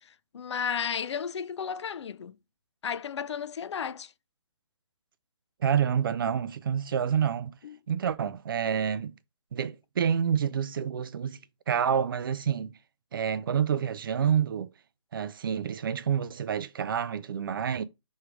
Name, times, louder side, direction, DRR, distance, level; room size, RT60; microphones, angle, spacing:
voice 1, 0.1-2.4 2.8-4.1 7.6-7.8, left 7 dB, 60° left, 0.4 m, -33 dB
voice 2, 5.6-7.5 7.9-9.1 9.5-11.4 11.7-12.8 13.1-14.7 15.1-17.8, right 8 dB, 45° right, 0.4 m, -28 dB
3.6 x 3.1 x 4.6 m
figure-of-eight pair, 145°, 17 cm